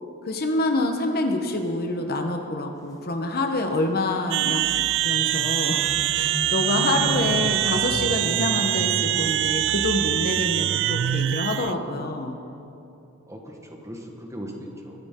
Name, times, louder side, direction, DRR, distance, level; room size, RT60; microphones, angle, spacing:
voice 1, 0.2-4.7 5.0-5.8 6.1-12.4, left 2 dB, 45° left, 4 dB, 1.0 m, -26 dB
sound 1, 4.3-11.7, right 13 dB, 55° right, 0.3 m, -24 dB
sound 2, 4.4-4.5 4.8-9.5, equal, 15° left, 1.2 m, -35 dB
voice 2, 6.9-7.4 13.3-15.1, equal, 15° right, 1 dB, 1.3 m, -38 dB
22.5 x 9.7 x 3.7 m, 2.7 s
head